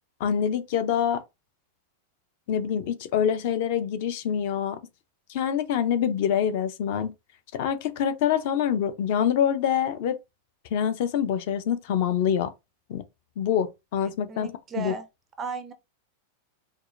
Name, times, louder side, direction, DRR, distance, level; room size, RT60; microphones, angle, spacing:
voice 1, 0.2-1.2 2.5-4.8 5.3-7.1 7.5-10.2 10.7-12.5 12.9-13.0 13.4-14.5 14.7-14.9, left 9 dB, 45° left, 0.5 m, -25 dB
voice 2, 14.3-15.1 15.4-15.7, right 5 dB, 15° right, 0.4 m, -35 dB
4.6 x 2.4 x 2.5 m
supercardioid pair, 180°, 0 cm